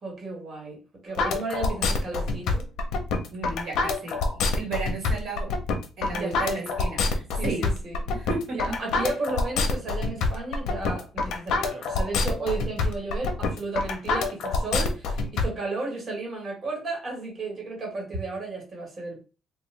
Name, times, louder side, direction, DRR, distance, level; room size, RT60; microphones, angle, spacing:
voice 1, 0.0-2.7 6.1-6.7 7.4-8.0 8.5-19.2, right 3 dB, 30° right, 1.3 m, -33 dB
sound 1, 1.2-15.4, left 3 dB, 75° left, 0.6 m, -26 dB
voice 2, 3.3-5.6 6.0-7.7 8.1-8.6, right 3 dB, 55° right, 1.1 m, -34 dB
3.0 x 2.1 x 3.2 m
cardioid pair, 150°, 0 cm